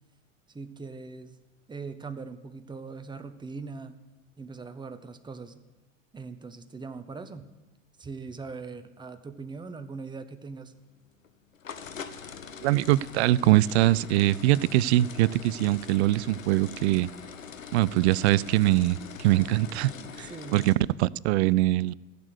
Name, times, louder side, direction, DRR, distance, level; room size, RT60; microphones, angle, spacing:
voice 1, 0.5-1.4 1.7-4.0 4.4-5.6 6.1-7.5 8.0-10.7 19.3-19.6 19.9-20.7, right 4 dB, 10° right, 9 dB, 1.0 m, -41 dB
sound 1, 10.8-20.7, left 6 dB, 85° left, 1.0 m, -43 dB
voice 2, 12.6-17.1 17.7-19.9 20.2-20.7 21.0-21.9, right 16 dB, 60° right, 22 dB, 0.5 m, -23 dB
15.5 x 6.8 x 8.0 m, 1.1 s
figure-of-eight pair, 85°, 38 cm